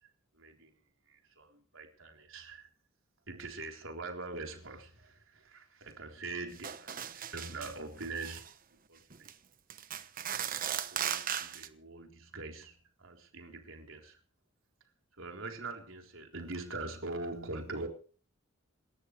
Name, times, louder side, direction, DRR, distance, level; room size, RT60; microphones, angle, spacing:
voice 1, 0.3-0.7 1.1-2.7 3.3-8.4 8.9-9.3 10.4-14.2 15.2-17.9, right 3 dB, 75° right, 3.9 m, -43 dB
sound 1, 6.6-7.7 8.0-8.5 9.1-9.3 9.7-11.7, right 9 dB, 45° right, 1.1 m, -37 dB
27.5 x 13.5 x 3.3 m
head